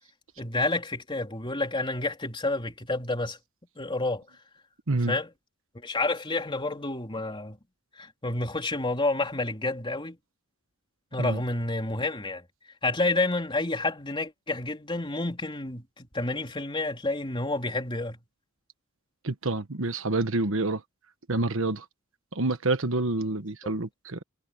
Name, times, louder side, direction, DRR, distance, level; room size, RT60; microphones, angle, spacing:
voice 1, 0.4-3.4 3.8-4.2 5.1-5.3 5.7-7.6 8.0-10.2 11.1-12.4 12.8-18.2 23.6-23.7, left 2 dB, 25° left, 3.5 m, -29 dB
voice 2, 19.2-20.8 21.3-21.8 22.3-24.2, right 2 dB, 65° right, 1.3 m, -27 dB
head